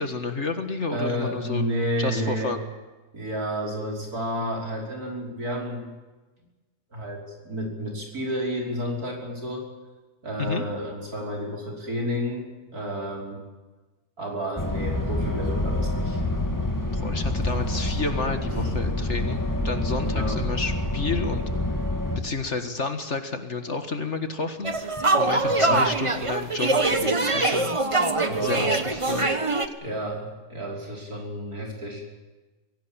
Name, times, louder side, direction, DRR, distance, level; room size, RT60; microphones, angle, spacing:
voice 1, 0.0-1.6 2.0-2.6 10.4-10.7 16.9-21.4 22.2-24.7 25.2-27.7 28.4-29.3, left 3 dB, 45° left, 7 dB, 1.9 m, -30 dB
voice 2, 0.9-2.5 3.1-5.8 6.9-9.7 10.2-13.4 14.2-16.2 18.5-18.7 20.0-20.4 25.4-25.8 28.3-28.7 29.8-32.0, equal, 65° right, 0 dB, 6.0 m, -31 dB
sound 1, 14.6-22.2, left 1 dB, 10° left, 2.6 m, -27 dB
sound 2, 24.6-29.7, right 2 dB, 20° right, 1.2 m, -23 dB
23.0 x 17.5 x 8.8 m, 1.2 s
omnidirectional pair, 1.7 m